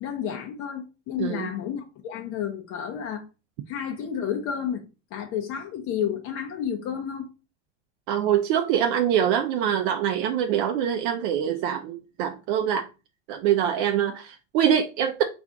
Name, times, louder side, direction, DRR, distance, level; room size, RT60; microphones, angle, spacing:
voice 1, 0.0-3.3 3.7-4.8 5.1-7.3, left 8 dB, 40° left, 0.7 m, -31 dB
voice 2, 1.2-1.5 8.1-12.9 13.3-15.2, right 9 dB, 50° right, 0.5 m, -24 dB
3.2 x 2.5 x 3.7 m
hypercardioid pair, 95°, 36 cm